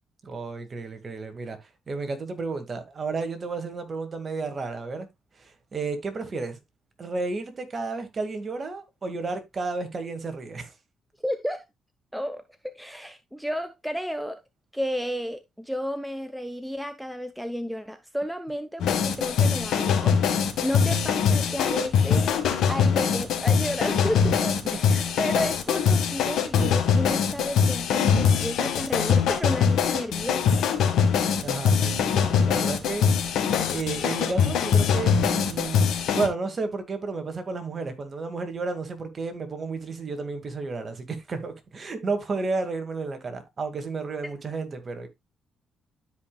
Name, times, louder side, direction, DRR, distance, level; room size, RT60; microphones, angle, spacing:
voice 1, 0.2-5.1 5.3-6.6 7.0-10.7 24.6-24.8 31.4-35.8 36.1-45.1, right 3 dB, 40° right, 2.1 m, -32 dB
voice 2, 11.2-11.6 12.1-14.4 14.7-22.4 22.7-30.5, equal, ahead, 0.9 m, -32 dB
sound 1, 18.8-36.3, left 7 dB, 75° left, 1.8 m, -23 dB
12.5 x 5.2 x 2.4 m
cardioid pair, 90°, 0 cm